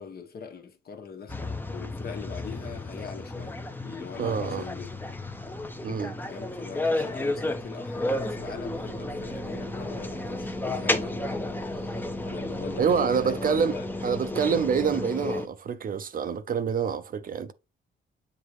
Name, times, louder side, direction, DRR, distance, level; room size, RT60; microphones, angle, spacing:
voice 1, 0.0-4.9 6.3-13.8, left 6 dB, 50° left, 1.2 m, -42 dB
sound 1, 1.3-15.5, left 2 dB, 10° left, 0.7 m, -32 dB
voice 2, 4.2-4.6 5.8-6.1 12.8-13.8 14.0-17.5, right 6 dB, 45° right, 0.6 m, -26 dB
sound 2, 8.1-14.9, right 10 dB, 80° right, 1.0 m, -47 dB
7.9 x 2.9 x 4.7 m
cardioid pair, 135°, 21 cm